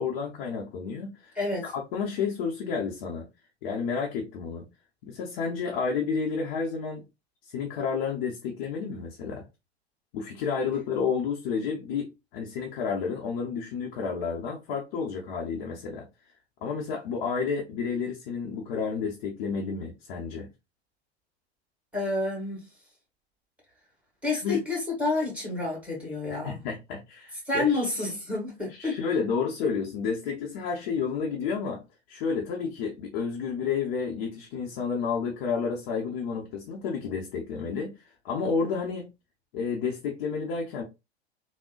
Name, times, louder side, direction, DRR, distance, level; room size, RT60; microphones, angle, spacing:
voice 1, 0.0-1.4 1.6-3.3 3.6-4.7 5.0-7.0 7.5-9.5 10.1-16.1 16.6-20.5 24.3-24.6 26.4-27.8 28.8-31.8 32.1-37.9 38.2-39.1 39.5-40.8, left 5 dB, 45° left, 0.7 m, -30 dB
voice 2, 1.3-1.7 21.9-22.7 24.2-26.6 27.4-29.0, left 3 dB, 5° right, 1.7 m, -29 dB
3.6 x 2.1 x 2.4 m
figure-of-eight pair, 90°, 33 cm